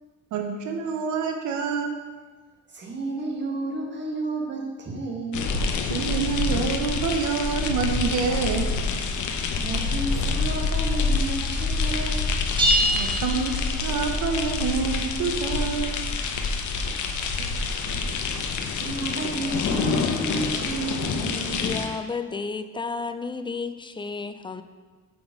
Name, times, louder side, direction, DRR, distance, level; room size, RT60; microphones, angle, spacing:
voice 1, 0.3-2.0 5.9-8.7 12.9-16.4, right 5 dB, 75° right, 4 dB, 0.8 m, -27 dB
voice 2, 2.7-5.7 9.5-12.4 17.1-17.8 18.7-21.7, right 2 dB, 35° right, -1 dB, 1.6 m, -32 dB
sound 1, 5.3-21.9, left 4 dB, 75° left, 0.8 m, -27 dB
sound 2, 12.6-14.2, equal, 15° right, 1.5 m, -24 dB
voice 3, 21.6-24.6, left 4 dB, 15° left, 10 dB, 0.4 m, -32 dB
6.3 x 4.6 x 5.1 m, 1.4 s
cardioid pair, 90°, 30 cm